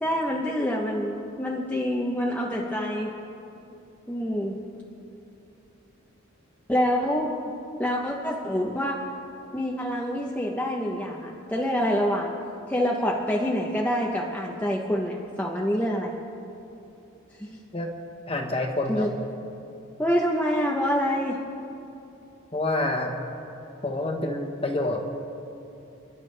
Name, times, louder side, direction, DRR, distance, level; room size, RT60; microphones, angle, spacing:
voice 1, 0.0-3.1 4.1-4.6 6.7-9.0 9.5-12.3 12.7-16.1 17.4-17.6 18.9-19.1 20.0-21.4, equal, 10° left, -2 dB, 0.8 m, -26 dB
voice 2, 18.3-19.1 22.5-23.1 23.8-25.2, left 2 dB, 25° left, 3 dB, 1.2 m, -27 dB
30.0 x 10.5 x 3.4 m, 2.8 s
head